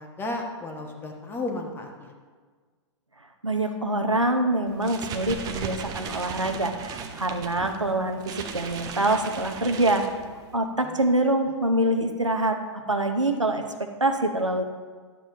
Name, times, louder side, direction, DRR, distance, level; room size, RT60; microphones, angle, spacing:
voice 1, 0.0-2.1 10.8-11.0, left 2 dB, 15° left, 2 dB, 1.1 m, -33 dB
voice 2, 3.4-10.0 10.5-12.6 12.9-13.6 14.0-14.6, right 1 dB, 90° right, 5 dB, 0.8 m, -25 dB
sound 1, 4.7-10.6, right 6 dB, 25° right, 0.7 m, -37 dB
11.5 x 7.6 x 2.9 m, 1.5 s
figure-of-eight pair, 105°, 15 cm